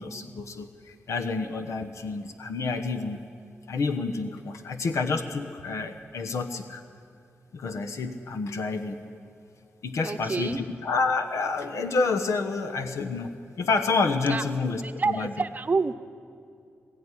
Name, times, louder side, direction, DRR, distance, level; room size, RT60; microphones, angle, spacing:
voice 1, 0.0-3.2 3.7-6.8 7.5-9.0 9.8-13.3 13.6-15.3, left 4 dB, 85° left, 5 dB, 1.1 m, -29 dB
voice 2, 10.0-10.6 14.3-14.4 14.8-15.9, right 4 dB, 35° right, 10 dB, 0.8 m, -28 dB
21.5 x 15.5 x 9.9 m, 2.5 s
wide cardioid pair, 120°, 5 cm